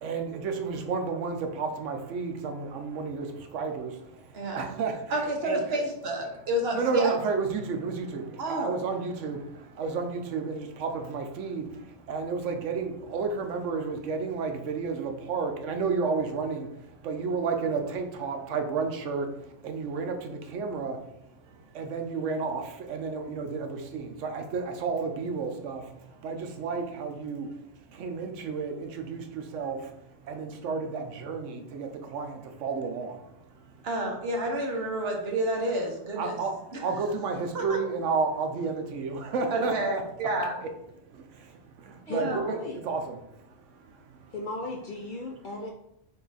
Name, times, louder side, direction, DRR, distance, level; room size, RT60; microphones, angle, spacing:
voice 1, 0.0-5.8 6.7-33.8 36.2-40.0 40.6-40.7 41.1-42.6 42.8-44.3, right 4 dB, 80° right, 5 dB, 1.0 m, -32 dB
voice 2, 4.3-4.7 5.1-7.1 8.4-8.7 33.8-36.4 36.7-36.8 37.5-37.8 39.5-40.5 42.1-42.4, right 1 dB, 60° right, 1 dB, 1.1 m, -30 dB
voice 3, 42.1-42.8 44.3-45.7, left 2 dB, 55° left, 1 dB, 0.6 m, -35 dB
5.6 x 2.4 x 4.0 m, 0.81 s
omnidirectional pair, 1.3 m